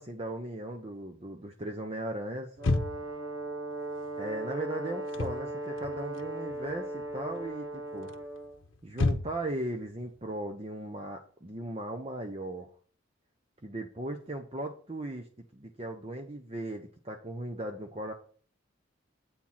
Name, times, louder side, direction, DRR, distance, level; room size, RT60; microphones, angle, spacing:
voice 1, 0.0-2.5 4.2-8.1 8.8-12.7 13.6-15.3 15.5-18.1, right 1 dB, 30° right, 3 dB, 0.8 m, -37 dB
sound 1, 2.6-3.2 5.0-5.4 5.8-6.7 7.0-7.4 8.1-9.6, left 2 dB, 85° left, 0.8 m, -30 dB
Brass instrument, 2.6-8.6, right 2 dB, 80° right, 1.3 m, -38 dB
8.6 x 4.5 x 5.7 m, 0.44 s
head